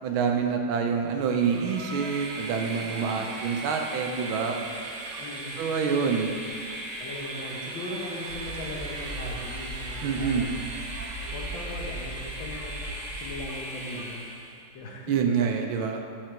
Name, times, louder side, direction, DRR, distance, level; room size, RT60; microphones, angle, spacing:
voice 1, 0.0-4.6 5.6-6.3 10.0-10.5 15.1-16.0, right 6 dB, 80° right, 3 dB, 1.5 m, -26 dB
Train, 1.1-14.6, right 2 dB, 55° right, 0.8 m, -38 dB
voice 2, 2.9-3.4 5.2-5.6 7.0-10.6 11.3-12.8 13.1-14.2 14.7-15.1, left 1 dB, 75° left, -1 dB, 1.7 m, -39 dB
sound 1, 8.3-13.4, right 1 dB, 50° left, 1.5 m, -39 dB
7.5 x 4.9 x 4.5 m, 2.2 s
omnidirectional pair, 2.2 m